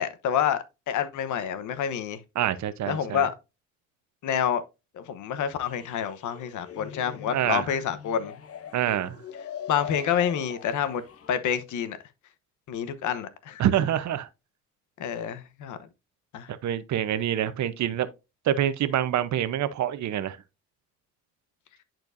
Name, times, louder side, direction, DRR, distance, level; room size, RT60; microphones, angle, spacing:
voice 1, 0.0-2.2 2.8-3.3 4.2-4.6 4.9-8.3 9.7-11.0 11.3-12.0 12.7-13.6 15.0-15.8 16.3-16.5, left 8 dB, 80° left, 1.0 m, -28 dB
voice 2, 2.4-3.3 7.3-7.6 8.7-9.2 13.6-14.3 16.5-18.1 18.5-20.4, right 11 dB, 70° right, 0.8 m, -26 dB
sound 1, 5.6-11.3, left 9 dB, 50° left, 0.9 m, -42 dB
10.5 x 4.5 x 2.6 m
cardioid pair, 90°, 30 cm